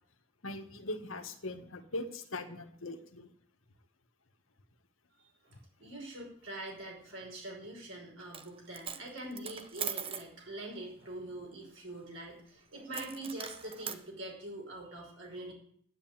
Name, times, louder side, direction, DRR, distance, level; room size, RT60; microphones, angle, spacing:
voice 1, 0.4-3.3, left 2 dB, 80° left, 6 dB, 1.7 m, -40 dB
voice 2, 5.4-15.5, right 1 dB, 70° right, -1 dB, 5.6 m, -44 dB
Coin (dropping), 8.2-8.5 8.7-10.3 12.9-14.0, right 7 dB, 30° right, 0.8 m, -40 dB
10.5 x 10.0 x 9.0 m, 0.64 s
head